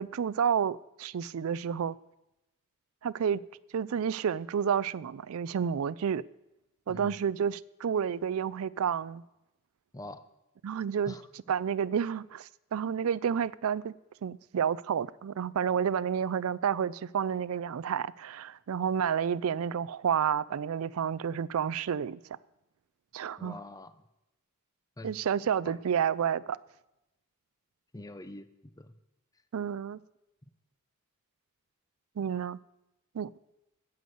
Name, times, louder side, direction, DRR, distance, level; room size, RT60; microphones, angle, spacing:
voice 1, 0.0-2.0 3.0-3.4 3.7-6.2 6.9-9.2 10.6-11.1 11.5-13.9 14.2-22.2 23.1-23.6 25.0-26.6 29.5-30.0 32.2-32.6 33.1-33.3, right 7 dB, 75° right, 0.4 m, -30 dB
voice 2, 6.9-7.2 9.9-10.2 11.1-11.3 23.4-23.9 25.0-25.1 25.6-25.7 27.9-28.9, left 1 dB, 15° left, 0.6 m, -44 dB
10.5 x 8.1 x 7.8 m
head